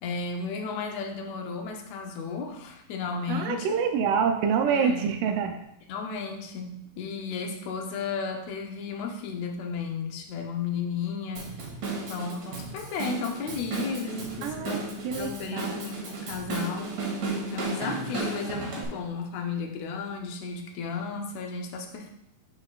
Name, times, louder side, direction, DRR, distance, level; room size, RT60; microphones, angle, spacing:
voice 1, 0.0-3.9 4.7-5.2 5.9-11.5 12.1-17.1 17.5-22.1, left 5 dB, 70° left, 2 dB, 1.9 m, -34 dB
voice 2, 3.3-5.6 14.4-14.8 15.0-15.8, right 6 dB, 90° right, 5 dB, 2.2 m, -26 dB
Drum kit / Drum, 11.4-18.9, right 3 dB, 60° right, 2.4 m, -34 dB
12.0 x 4.3 x 2.4 m, 0.79 s
omnidirectional pair, 3.6 m